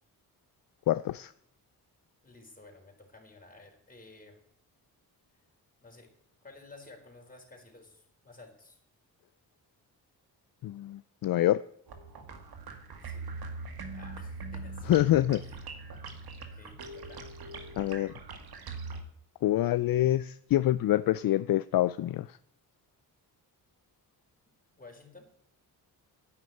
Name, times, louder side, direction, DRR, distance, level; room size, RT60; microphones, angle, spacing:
voice 1, 0.9-1.3 10.6-11.6 14.9-15.4 17.8-18.1 19.4-22.4, left 14 dB, 60° left, 0.5 m, -26 dB
voice 2, 2.2-4.4 5.8-6.1 6.4-8.8 13.0-13.3 13.9-15.6 16.5-17.3 24.8-25.3, left 3 dB, 20° left, 4.5 m, -53 dB
sound 1, 11.9-19.0, right 3 dB, 65° right, 2.0 m, -42 dB
9.8 x 9.4 x 9.1 m
cardioid pair, 80°, 39 cm